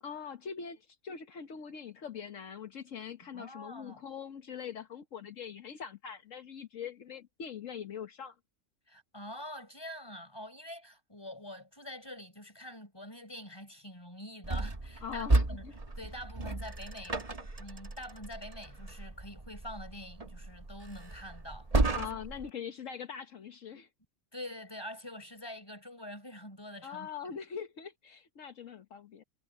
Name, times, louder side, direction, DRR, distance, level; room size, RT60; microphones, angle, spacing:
voice 1, 0.0-8.3 15.0-15.7 21.9-23.9 26.8-29.2, left 7 dB, 70° left, 1.5 m, -42 dB
voice 2, 3.2-4.0 8.9-17.2 17.6-22.3 24.3-27.3, left 1 dB, 20° left, 4.9 m, -46 dB
sound 1, 14.4-22.5, right 2 dB, 30° right, 1.8 m, -33 dB
omnidirectional pair, 1.4 m